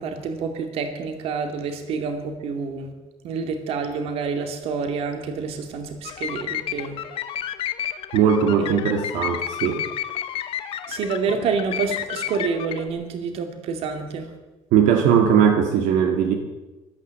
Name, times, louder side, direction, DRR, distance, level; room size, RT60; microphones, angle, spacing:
voice 1, 0.0-2.9 3.2-7.0 8.6-8.8 10.9-14.3, right 5 dB, 55° right, 6 dB, 2.3 m, -28 dB
sound 1, 6.0-12.9, left 10 dB, 50° left, 0.9 m, -31 dB
voice 2, 8.1-9.8 14.7-16.3, right 8 dB, 80° right, 4 dB, 1.8 m, -19 dB
13.5 x 12.0 x 7.7 m, 1.1 s
cardioid pair, 175°, 12 cm